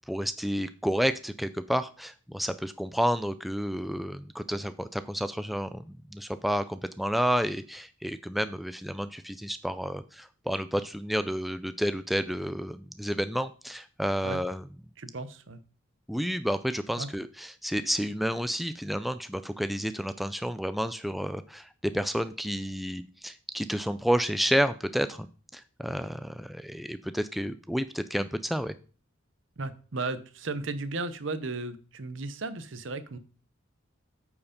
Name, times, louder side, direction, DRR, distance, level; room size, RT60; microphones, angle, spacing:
voice 1, 0.1-14.6 16.1-25.3 25.5-28.7, equal, ahead, 11 dB, 0.3 m, -30 dB
voice 2, 15.0-15.6 17.0-17.1 29.6-33.2, right 3 dB, 65° right, 12 dB, 0.8 m, -35 dB
8.6 x 4.9 x 5.1 m, 0.38 s
head